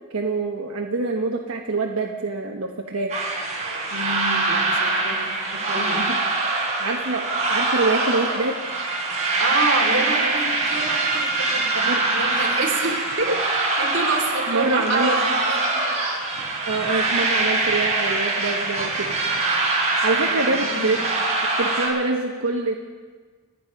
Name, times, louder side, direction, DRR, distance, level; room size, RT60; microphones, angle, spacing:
voice 1, 0.1-3.1 5.9-6.0 6.8-8.6 11.9-12.0 14.5-15.1 16.6-19.1 20.0-21.0 21.6-22.8, right 3 dB, 90° right, 1 dB, 1.2 m, -25 dB
sound 1, 3.1-21.9, right 3 dB, 30° right, 4.8 m, -23 dB
voice 2, 3.9-6.1 9.4-13.4 13.8-15.8 20.2-21.0, right 3 dB, 60° right, 0 dB, 3.2 m, -27 dB
27.5 x 9.5 x 5.3 m, 1.5 s
head